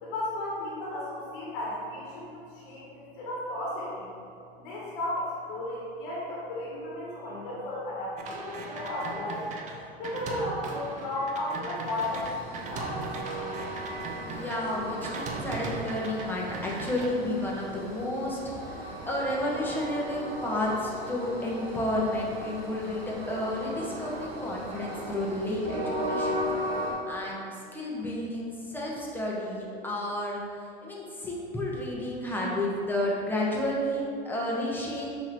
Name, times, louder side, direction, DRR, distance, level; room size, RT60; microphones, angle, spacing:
voice 1, 0.0-4.1 4.6-9.4 10.0-13.0, left 1 dB, 60° left, -6 dB, 1.2 m, -34 dB
sound 1, 8.2-14.6 15.0-16.3 16.5-17.1, right 4 dB, 25° right, 0.5 m, -39 dB
Train, 11.9-26.9, equal, 45° right, 1.3 m, -37 dB
voice 2, 14.3-18.8 19.1-26.4 27.1-30.4 30.8-35.1, left 1 dB, 5° left, -4 dB, 0.8 m, -31 dB
5.7 x 2.9 x 3.0 m, 2.4 s
hypercardioid pair, 100°, 30 cm